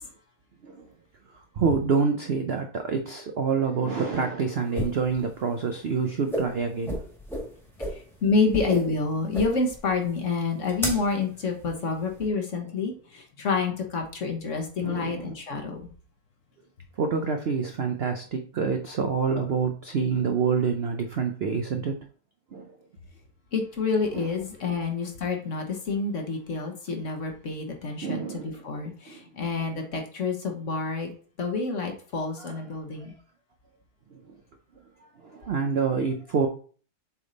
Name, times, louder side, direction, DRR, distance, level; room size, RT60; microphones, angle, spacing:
voice 1, 1.3-7.0 14.8-15.3 17.0-22.1 22.5-22.7 24.1-24.3 28.0-28.7 29.1-29.2 32.4-32.6 33.0-33.2 34.1-34.3 35.2-36.5, right 5 dB, 70° right, 0.5 m, -27 dB
sound 1, 4.5-12.3, equal, ahead, 1.5 m, -35 dB
voice 2, 7.9-15.9 23.5-31.1 31.4-33.1, left 4 dB, 50° left, 1.3 m, -28 dB
7.4 x 3.5 x 3.9 m
omnidirectional pair, 1.9 m